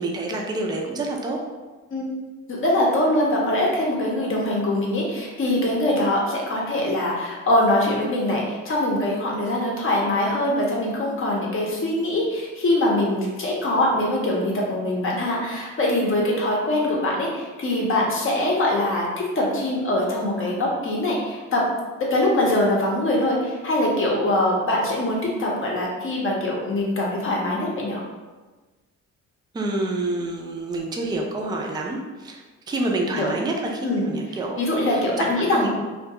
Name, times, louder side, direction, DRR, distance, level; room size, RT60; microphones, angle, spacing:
voice 1, 0.0-1.4 29.5-34.6 34.9-35.7, right 2 dB, 15° right, 0 dB, 0.3 m, -28 dB
voice 2, 2.5-21.6 22.1-28.0 33.1-33.3 33.8-34.1 34.6-35.7, left 1 dB, 45° left, -3 dB, 0.7 m, -23 dB
2.3 x 2.2 x 2.8 m, 1.3 s
cardioid pair, 90°, 30 cm